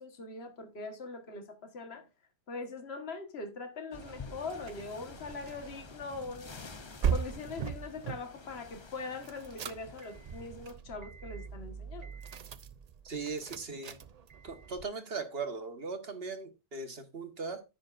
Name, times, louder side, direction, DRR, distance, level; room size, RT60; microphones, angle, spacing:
voice 1, 0.0-2.1 2.5-6.5 7.1-12.1, left 3 dB, 50° left, 1.7 m, -42 dB
sound 1, 3.9-10.7, left 4 dB, 35° left, 0.5 m, -50 dB
sound 2, 3.9-8.2 9.2-14.8, right 7 dB, 75° right, 0.3 m, -39 dB
voice 2, 13.0-14.0 14.4-17.6, right 4 dB, 45° right, 1.6 m, -39 dB
10.5 x 9.0 x 2.5 m
omnidirectional pair, 1.4 m